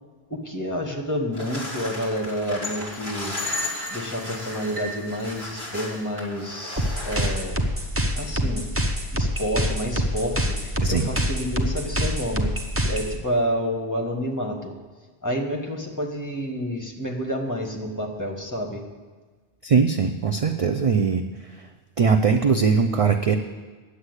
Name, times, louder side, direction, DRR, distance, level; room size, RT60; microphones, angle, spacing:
voice 1, 0.3-3.4 3.9-7.6 8.2-8.7 9.1-12.5 12.8-14.7 15.2-18.8, equal, 15° left, 1 dB, 1.6 m, -29 dB
sound 1, 1.3-7.3, left 1 dB, 70° right, 3.4 m, -34 dB
sound 2, 6.8-13.2, equal, 15° right, 0.8 m, -26 dB
voice 2, 19.6-21.2 22.0-23.4, right 5 dB, 45° right, 7 dB, 0.5 m, -20 dB
9.8 x 8.2 x 8.0 m, 1.4 s
omnidirectional pair, 1.1 m